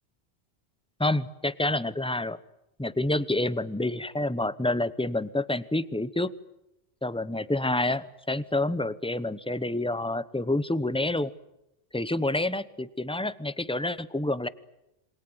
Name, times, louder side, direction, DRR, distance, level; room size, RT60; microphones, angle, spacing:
voice 1, 1.0-2.4 2.8-6.3 7.0-11.3 11.9-14.5, left 2 dB, 5° left, 15 dB, 0.8 m, -28 dB
28.0 x 26.0 x 7.9 m, 0.89 s
omnidirectional pair, 1.1 m